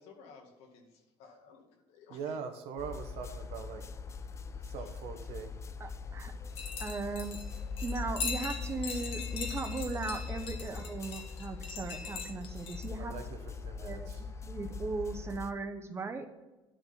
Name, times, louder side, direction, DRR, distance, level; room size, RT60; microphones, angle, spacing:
voice 1, 0.0-2.4 4.8-4.9, left 5 dB, 80° left, 3 dB, 1.9 m, -56 dB
voice 2, 2.1-3.8 4.7-5.5 13.0-13.4 13.6-14.2, right 6 dB, 75° right, 6 dB, 1.3 m, -42 dB
sound 1, 2.8-15.5, left 5 dB, 25° left, 0.5 m, -41 dB
voice 3, 5.8-6.3 6.8-7.4 7.8-13.1 13.8-16.4, right 4 dB, 25° right, 7 dB, 0.9 m, -38 dB
sound 2, 6.6-12.8, left 5 dB, 60° left, 1.5 m, -41 dB
10.5 x 5.1 x 5.7 m, 1.1 s
cardioid pair, 125°, 11 cm